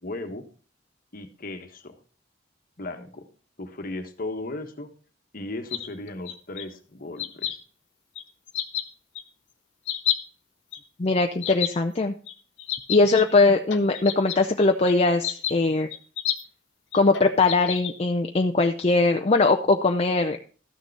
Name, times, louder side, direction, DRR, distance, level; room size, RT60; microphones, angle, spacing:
voice 1, 0.0-0.5 1.1-2.0 2.8-3.3 3.6-4.9 5.3-7.6, left 2 dB, 50° left, 7 dB, 1.3 m, -36 dB
sound 1, 5.7-6.6 7.2-7.6 8.2-8.3 8.5-8.8 9.2-9.3 9.9-10.2 10.7-10.8 11.4-11.7 12.3-12.4 12.6-13.2 13.6-14.9 15.2-15.5 15.9-16.4 16.9-17.9, left 11 dB, 90° left, 1.3 m, -29 dB
voice 2, 11.0-12.1 12.9-15.9 16.9-20.4, left 3 dB, 35° left, 5 dB, 0.6 m, -21 dB
13.0 x 6.6 x 4.7 m, 0.40 s
head